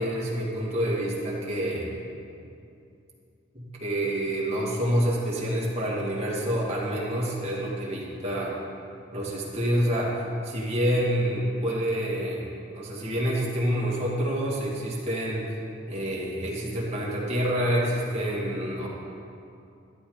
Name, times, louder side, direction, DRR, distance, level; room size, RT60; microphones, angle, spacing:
voice 1, 0.0-2.1 3.5-8.5 9.1-10.1 10.4-15.4 15.9-18.9, equal, 35° right, -5 dB, 2.5 m, -27 dB
13.0 x 12.0 x 4.1 m, 2.6 s
head